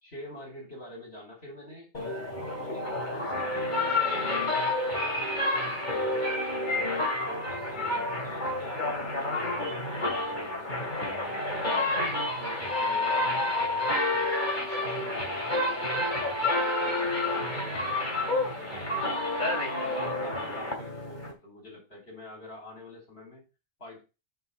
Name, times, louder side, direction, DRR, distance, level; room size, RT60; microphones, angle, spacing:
voice 1, 0.0-1.9 2.6-6.2 6.6-6.9 7.2-11.9 12.4-13.6 13.9-16.2 16.6-19.1 19.5-23.4 23.8-24.0, left 1 dB, 70° left, -3 dB, 4.7 m, -47 dB
sound 1, 1.9-21.3, left 2 dB, 45° left, 2.8 m, -29 dB
6.7 x 6.5 x 5.7 m, 0.29 s
omnidirectional pair, 1.1 m